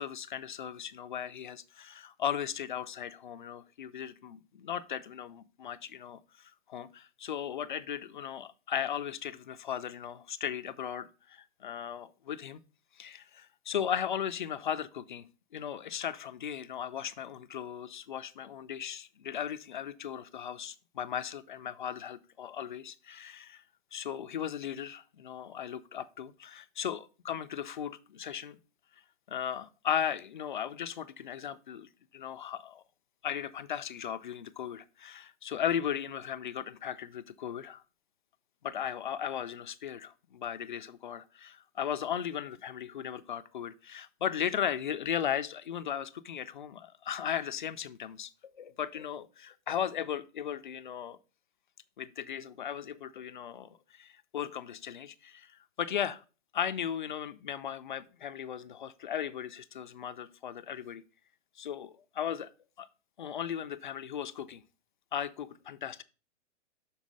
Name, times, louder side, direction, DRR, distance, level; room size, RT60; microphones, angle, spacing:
voice 1, 0.0-12.6 13.0-15.3 15.5-23.6 23.9-28.6 29.3-32.8 33.2-37.8 38.6-48.3 48.6-51.2 52.0-55.5 55.8-56.2 56.5-61.0 61.6-62.5 62.8-62.9 63.2-64.6 65.1-66.0, left 9 dB, 45° left, 0.4 m, -37 dB
6.3 x 4.6 x 5.2 m
hypercardioid pair, 170°, 36 cm